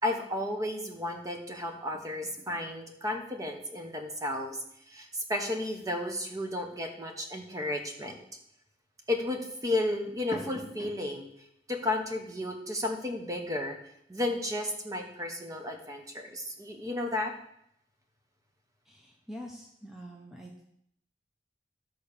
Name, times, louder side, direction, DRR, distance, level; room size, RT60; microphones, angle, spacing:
voice 1, 0.0-4.6 4.9-8.2 9.1-11.3 11.7-13.8 14.1-17.3, left 1 dB, 20° right, 3 dB, 1.2 m, -33 dB
voice 2, 18.9-20.7, equal, ahead, -1 dB, 0.9 m, -45 dB
12.0 x 4.2 x 6.8 m, 0.74 s
head